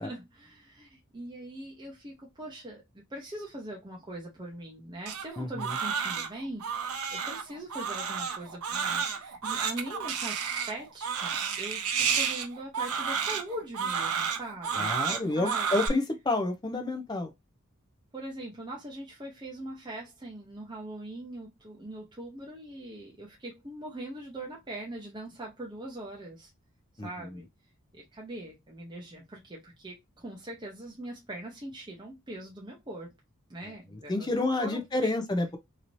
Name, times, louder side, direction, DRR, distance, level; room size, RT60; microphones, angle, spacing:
voice 1, 0.0-15.7 18.1-26.5 27.0-27.5 27.9-33.1 33.5-35.1, right 1 dB, 20° right, 0.7 m, -42 dB
Crying sobbing, 5.1-15.9, right 6 dB, 90° right, 0.7 m, -31 dB
voice 2, 5.4-5.8 14.7-17.3 27.0-27.4 34.1-35.6, left 2 dB, 20° left, 0.5 m, -29 dB
3.1 x 2.8 x 2.5 m
head